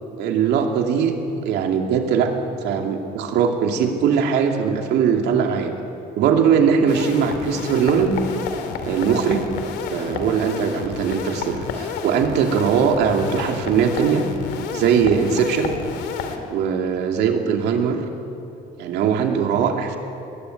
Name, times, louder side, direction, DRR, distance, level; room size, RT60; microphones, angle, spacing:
voice 1, 0.2-1.1 1.4-2.3 2.6-5.7 6.2-8.2 8.8-9.5 9.9-14.3 14.7-15.7 16.5-18.0 18.8-20.0, right 7 dB, 80° right, 3 dB, 2.6 m, -20 dB
sound 1, 6.9-16.4, left 6 dB, 85° left, 2.3 m, -31 dB
21.0 x 17.0 x 9.6 m, 2.8 s
cardioid pair, 110°, 17 cm